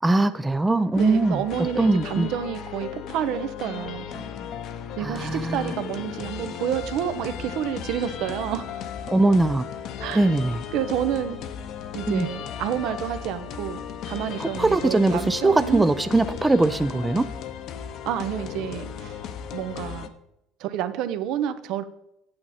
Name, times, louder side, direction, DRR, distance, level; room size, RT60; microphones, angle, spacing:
voice 1, 0.0-1.4 1.8-2.3 5.0-5.7 9.1-9.7 10.1-10.6 12.1-12.3 14.4-17.2, right 2 dB, 10° right, 11 dB, 0.4 m, -21 dB
sound 1, 0.9-20.1, left 8 dB, 55° left, 0.8 m, -36 dB
voice 2, 0.9-4.3 5.0-8.7 10.0-10.3 10.7-11.4 11.9-15.8 18.1-19.2 19.5-20.1 20.6-21.8, right 10 dB, 65° right, 12 dB, 0.7 m, -29 dB
9.0 x 8.6 x 4.3 m, 0.83 s
cardioid pair, 125°, 0 cm